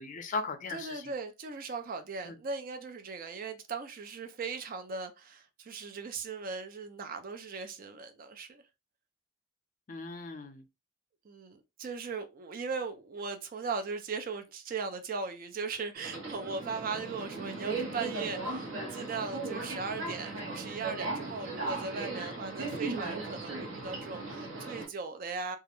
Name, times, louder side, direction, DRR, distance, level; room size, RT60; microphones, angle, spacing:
voice 1, 0.0-1.0 2.3-2.4 9.9-10.6 18.8-18.9 22.2-22.3, left 4 dB, 40° left, 0.4 m, -38 dB
voice 2, 0.7-8.6 11.2-25.6, right 4 dB, 45° right, 0.4 m, -38 dB
Subway metro underground, 15.9-24.8, right 3 dB, 70° right, 0.8 m, -37 dB
2.3 x 2.0 x 2.9 m
head